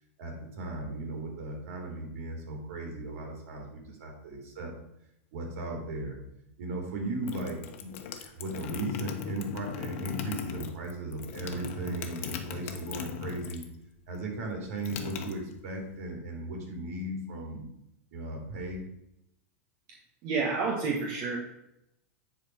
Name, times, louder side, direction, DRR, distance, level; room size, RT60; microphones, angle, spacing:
voice 1, 0.2-4.7 5.3-6.2 6.6-13.6 14.1-17.7 18.1-18.8, right 2 dB, 70° right, 1 dB, 2.8 m, -37 dB
sound 1, 7.0-13.8 14.1-15.9, left 8 dB, 65° left, 1.1 m, -38 dB
voice 2, 20.2-21.4, right 4 dB, 50° right, -1 dB, 1.6 m, -29 dB
9.9 x 4.4 x 4.5 m, 0.82 s
hypercardioid pair, 120°, 8 cm